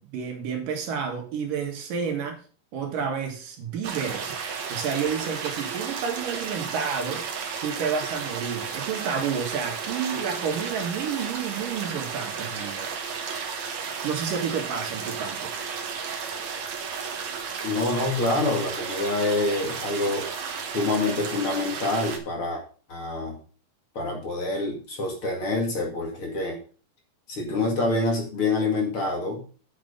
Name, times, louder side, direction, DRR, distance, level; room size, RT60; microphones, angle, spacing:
voice 1, 0.0-2.4 2.7-4.3 4.7-7.2 7.6-12.9 14.0-15.5, right 6 dB, 85° right, 3.5 m, -30 dB
sound 1, 3.8-22.2, right 6 dB, 65° right, 2.6 m, -33 dB
voice 2, 17.6-20.3 20.7-22.6 22.9-23.4 23.9-26.6 27.3-29.4, left 2 dB, 45° left, 2.8 m, -26 dB
7.9 x 7.4 x 5.5 m
omnidirectional pair, 3.8 m